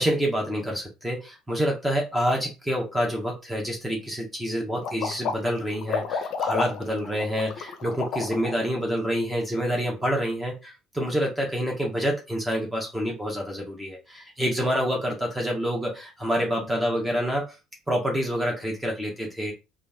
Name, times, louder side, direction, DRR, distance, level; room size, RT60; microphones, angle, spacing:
voice 1, 0.0-17.5 17.9-19.5, equal, 10° right, -1 dB, 1.3 m, -27 dB
sound 1, 4.8-8.7, left 5 dB, 55° left, 0.7 m, -30 dB
3.8 x 2.4 x 3.6 m, 0.27 s
figure-of-eight pair, 55°, 0 cm